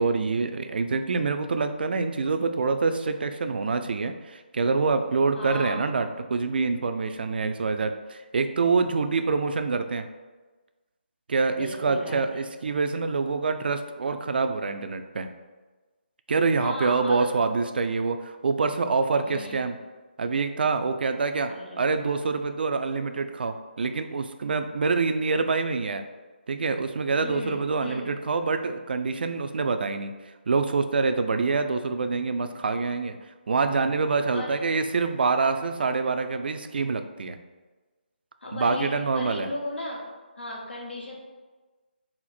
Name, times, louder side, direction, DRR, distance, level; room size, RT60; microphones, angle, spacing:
voice 1, 0.0-10.1 11.3-15.3 16.3-19.7 20.2-21.5 21.8-26.0 26.5-30.1 30.5-33.2 33.5-37.4 38.5-39.5, right 4 dB, 60° right, 8 dB, 0.3 m, -26 dB
voice 2, 5.4-5.8 9.1-9.3 11.5-12.5 16.6-17.3 19.2-19.7 21.5-21.9 27.1-28.1 34.3-34.6 38.4-40.0 40.4-41.1, left 1 dB, 75° left, -2 dB, 1.1 m, -36 dB
4.2 x 2.0 x 4.0 m, 1.3 s
figure-of-eight pair, 150°, 6 cm